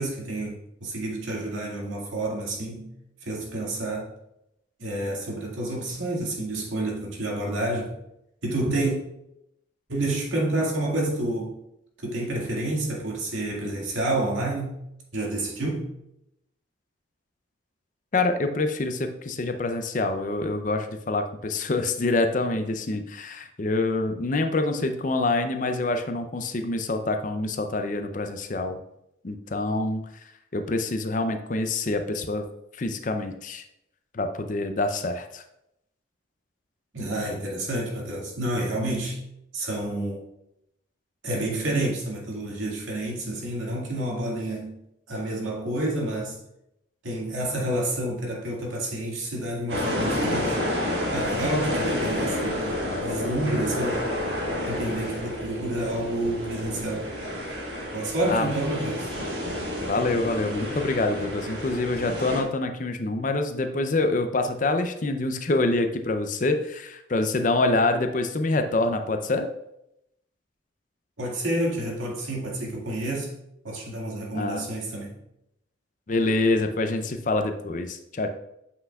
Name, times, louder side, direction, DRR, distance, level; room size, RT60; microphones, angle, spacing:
voice 1, 0.0-2.9 3.2-4.1 4.8-7.9 8.4-9.0 9.9-11.5 12.0-14.8 15.1-15.9 36.9-39.2 39.5-40.2 41.2-44.8 45.1-46.4 47.0-50.6 51.1-54.1 54.7-57.1 57.9-59.1 71.2-73.4 73.6-75.1, right 1 dB, 85° right, -3 dB, 2.0 m, -29 dB
voice 2, 18.1-28.8 29.2-30.0 30.5-32.4 32.8-33.6 34.1-35.4 58.3-58.5 59.8-69.5 74.3-74.7 76.1-78.3, left 2 dB, 40° left, 7 dB, 0.5 m, -26 dB
sound 1, 49.7-62.4, left 1 dB, 60° right, 1.6 m, -30 dB
8.2 x 5.7 x 2.3 m, 0.82 s
head